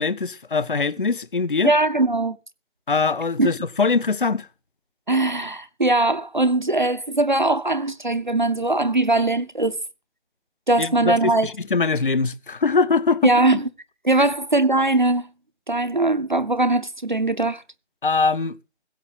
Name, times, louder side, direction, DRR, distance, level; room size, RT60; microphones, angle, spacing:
voice 1, 0.0-1.7 2.9-4.5 10.8-13.3 14.2-14.3 18.0-18.6, left 4 dB, 45° left, 0.6 m, -22 dB
voice 2, 1.6-2.4 3.4-3.5 5.1-9.8 10.7-11.5 13.2-13.7 14.0-15.3 15.7-17.6, right 2 dB, 40° right, 0.6 m, -20 dB
15.5 x 7.0 x 6.1 m
figure-of-eight pair, 165°, 36 cm